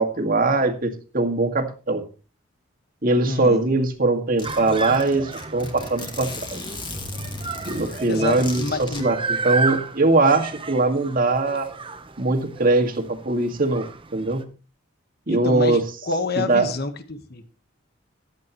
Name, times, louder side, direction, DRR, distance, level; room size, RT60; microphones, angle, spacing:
voice 1, 0.0-2.0 3.0-6.6 7.7-11.7 12.2-13.9 14.1-14.5 15.3-15.8 16.4-16.7, right 2 dB, 45° right, 5 dB, 1.9 m, -21 dB
voice 2, 3.2-3.6 7.6-9.1 15.3-17.5, left 3 dB, 50° left, 9 dB, 1.3 m, -28 dB
Zipper (clothing), 3.6-3.7 3.9-4.0 4.4-9.0, left 2 dB, 25° left, 2.2 m, -36 dB
sound 1, 4.4-14.4, right 4 dB, 25° right, 0.9 m, -33 dB
15.5 x 11.0 x 3.0 m, 0.34 s
head